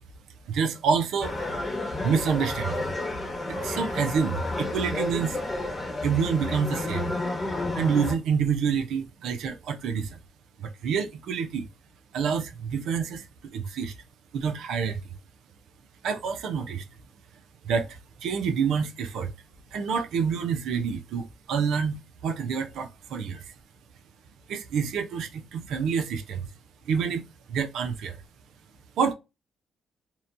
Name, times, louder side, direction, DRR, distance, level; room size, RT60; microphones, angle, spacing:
voice 1, 0.5-1.3 2.0-2.9 3.5-5.4 6.0-7.1 7.7-10.2 10.6-11.7 12.1-13.2 13.5-13.9 14.3-15.0 16.0-16.8 17.6-17.9 18.2-19.3 19.7-23.5 24.5-26.5 26.9-27.2 27.5-28.2 29.0-29.1, right 6 dB, 80° right, 0.5 m, -27 dB
sound 1, 1.2-8.1, left 2 dB, 20° left, 1.0 m, -31 dB
2.8 x 2.2 x 2.5 m
cardioid pair, 90°, 0 cm